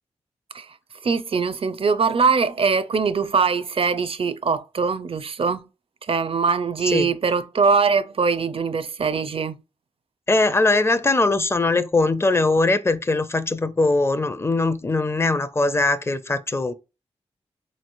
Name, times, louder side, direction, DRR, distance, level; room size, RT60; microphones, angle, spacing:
voice 1, 1.0-5.7 6.1-9.6, right 5 dB, 50° right, 0.5 m, -22 dB
voice 2, 10.3-16.7, left 3 dB, 20° left, 0.5 m, -21 dB
4.0 x 3.1 x 2.6 m
cardioid pair, 45°, 12 cm